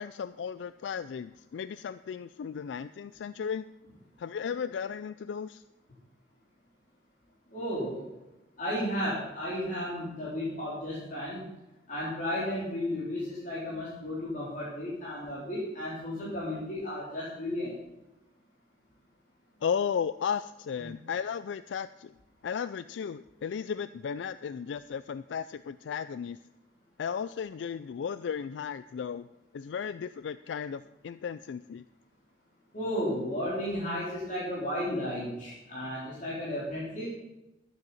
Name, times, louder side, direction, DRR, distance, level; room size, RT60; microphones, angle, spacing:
voice 1, 0.0-3.7 4.2-5.6 19.6-22.1 22.4-26.4 27.0-29.3 29.5-31.8, left 7 dB, 80° left, 15 dB, 0.3 m, -35 dB
voice 2, 7.5-8.0 8.6-11.5 11.9-17.7 20.8-20.9 32.7-37.1, left 1 dB, 45° left, -7 dB, 3.7 m, -33 dB
12.0 x 7.8 x 7.1 m, 0.96 s
head